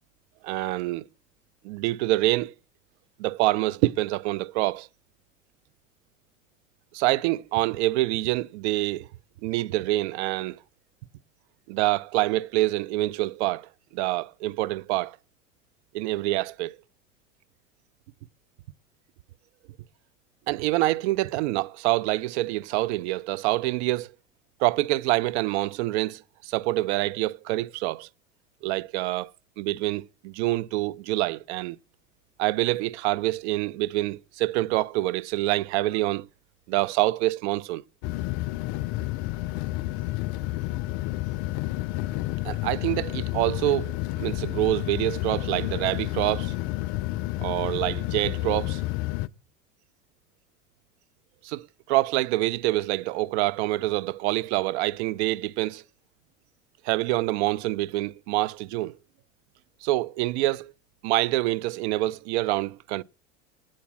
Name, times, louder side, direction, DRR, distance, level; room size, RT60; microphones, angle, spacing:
voice 1, 0.4-1.0 1.6-2.5 3.2-4.9 6.9-9.1 9.4-10.6 11.7-15.2 15.9-16.8 20.5-24.1 24.6-28.1 28.6-29.3 29.6-31.8 32.4-36.3 36.7-37.8 42.4-46.5 47.4-48.8 51.4-55.8 56.8-59.0 59.8-60.7 61.0-63.0, right 17 dB, 60° right, 0.4 m, -26 dB
sound 1, 38.0-49.3, left 17 dB, 55° left, 0.5 m, -30 dB
8.3 x 7.4 x 6.0 m
hypercardioid pair, 75°, 39 cm